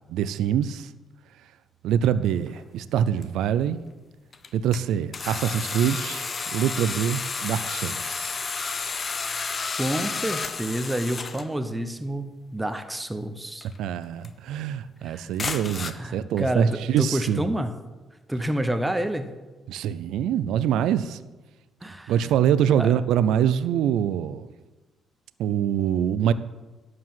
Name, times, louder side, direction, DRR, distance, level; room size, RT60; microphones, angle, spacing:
voice 1, 0.1-0.9 1.8-3.8 4.5-8.4 13.8-17.4 19.7-21.2 22.1-24.5 25.4-26.3, right 9 dB, 85° right, 0.4 m, -24 dB
sound 1, 2.5-2.6 3.2-3.3 4.3-4.8 5.1-11.5 13.6-13.8 14.2-14.3 15.4-15.9, left 4 dB, 40° left, 0.8 m, -31 dB
voice 2, 9.8-13.7 15.0-15.3 15.9-17.7 18.3-19.3 21.8-22.3 22.7-22.9, right 1 dB, 10° right, 0.8 m, -29 dB
11.5 x 4.8 x 7.6 m
cardioid pair, 90°, 0 cm